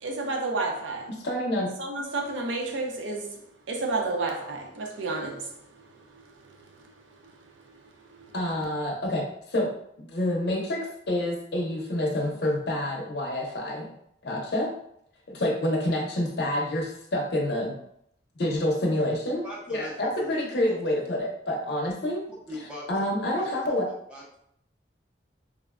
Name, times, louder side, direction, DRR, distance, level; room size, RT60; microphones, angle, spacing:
voice 1, 0.0-1.1 1.8-3.4 3.7-5.7 5.9-6.9 7.2-7.8 8.1-8.4, right 3 dB, 85° right, 0.5 m, -32 dB
voice 2, 1.1-1.7 8.3-9.7 10.0-13.9 14.2-14.7 15.3-17.8 18.4-22.2 22.9-23.9, left 1 dB, 60° left, 0.6 m, -28 dB
voice 3, 19.4-20.3 20.6-20.9 22.5-23.0 23.3-23.5 23.8-24.4, left 1 dB, 5° right, 0.7 m, -41 dB
3.5 x 2.1 x 2.3 m
head